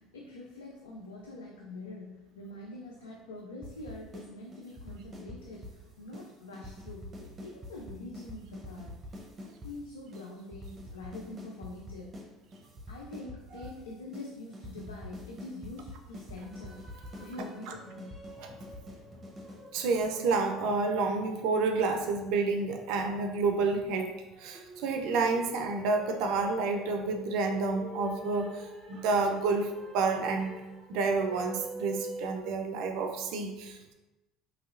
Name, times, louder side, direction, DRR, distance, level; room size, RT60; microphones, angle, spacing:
voice 1, 0.0-9.0 9.4-12.2 12.9-16.8 17.2-18.2, left 2 dB, 90° left, -2 dB, 0.3 m, -45 dB
sound 1, 3.6-4.3 4.5-5.8 6.1-6.3 6.5-9.7 10.1-10.2 10.5-12.3 12.5-13.8 14.1-14.3 14.5-19.6, left 1 dB, 30° right, 0.7 m, -45 dB
sound 2, 16.4-32.3, right 2 dB, ahead, 1.1 m, -48 dB
voice 2, 19.7-24.1 24.4-30.5 30.9-33.9, right 4 dB, 65° right, 4 dB, 0.4 m, -29 dB
3.0 x 2.7 x 2.5 m, 1.1 s
hypercardioid pair, 70°, 0 cm